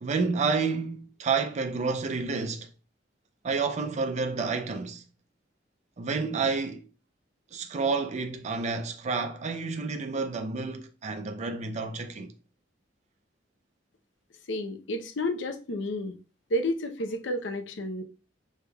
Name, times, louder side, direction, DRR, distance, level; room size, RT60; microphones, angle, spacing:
voice 1, 0.0-2.7 3.4-5.0 6.0-6.8 7.5-12.3, right 4 dB, 40° right, 0.4 m, -29 dB
voice 2, 14.5-16.2 16.5-18.0, left 1 dB, 85° left, 0.7 m, -31 dB
6.0 x 3.4 x 2.2 m
head